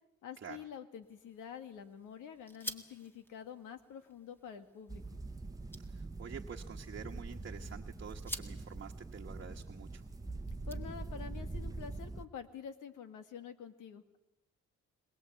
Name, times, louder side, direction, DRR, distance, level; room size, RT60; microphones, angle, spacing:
voice 1, 0.2-5.0 10.7-14.2, left 7 dB, 85° left, 9 dB, 1.9 m, -48 dB
sound 1, 1.0-11.3, equal, 5° left, 1.8 m, -51 dB
sound 2, 4.9-12.2, right 2 dB, 10° right, 1.1 m, -44 dB
voice 2, 5.8-10.1, right 7 dB, 40° right, 0 dB, 1.4 m, -48 dB
22.0 x 21.5 x 8.1 m, 0.95 s
cardioid pair, 90°, 30 cm